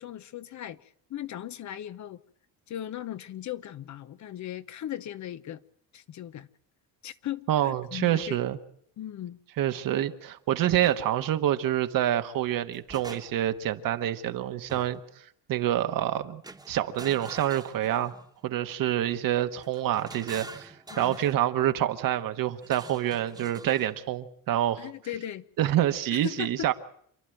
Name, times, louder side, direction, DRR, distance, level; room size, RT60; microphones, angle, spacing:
voice 1, 0.0-2.2 2.7-5.6 5.9-6.5 7.0-8.4 9.0-9.4 20.9-21.2 24.8-25.4 26.1-26.7, left 11 dB, 50° left, 0.9 m, -38 dB
voice 2, 7.5-8.6 9.6-15.0 15.5-16.4 16.7-18.1 18.4-24.9 25.6-26.7, right 12 dB, 65° right, 1.4 m, -27 dB
sound 1, 10.8-11.0 12.5-13.6 14.7-15.1 16.4-18.3 19.6-21.4 22.6-24.0, right 2 dB, 10° right, 1.4 m, -46 dB
27.5 x 11.5 x 9.1 m
cardioid pair, 125°, 36 cm